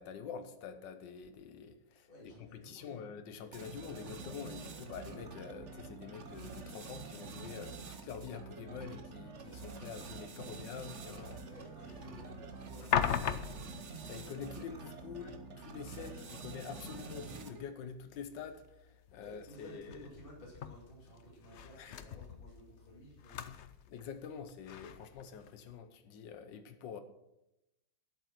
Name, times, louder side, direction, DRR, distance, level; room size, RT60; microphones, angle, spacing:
voice 1, 0.0-2.1 2.4-11.4 12.1-12.3 14.1-20.1 21.8-22.0 23.9-27.0, left 7 dB, 75° left, 9 dB, 1.6 m, -46 dB
voice 2, 2.0-3.1 11.4-13.7 19.1-23.6, equal, 30° left, -4 dB, 2.8 m, -55 dB
sound 1, 3.5-17.7, right 4 dB, 45° right, 1.2 m, -47 dB
sound 2, 10.5-25.8, left 8 dB, 90° left, 0.6 m, -42 dB
11.5 x 8.2 x 5.9 m, 0.89 s
omnidirectional pair, 2.0 m